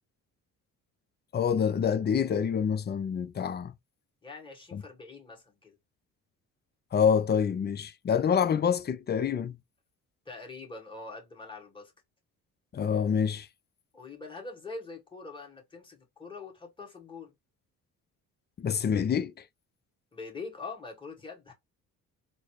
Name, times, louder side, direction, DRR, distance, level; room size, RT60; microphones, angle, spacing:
voice 1, 1.3-3.7 4.7-4.8 6.9-9.6 12.7-13.5 18.6-19.3, left 7 dB, 30° left, 0.4 m, -26 dB
voice 2, 4.2-5.8 10.3-11.9 13.9-17.3 20.1-21.5, left 3 dB, 15° left, 1.7 m, -43 dB
4.0 x 2.0 x 3.0 m
cardioid pair, 95°, 33 cm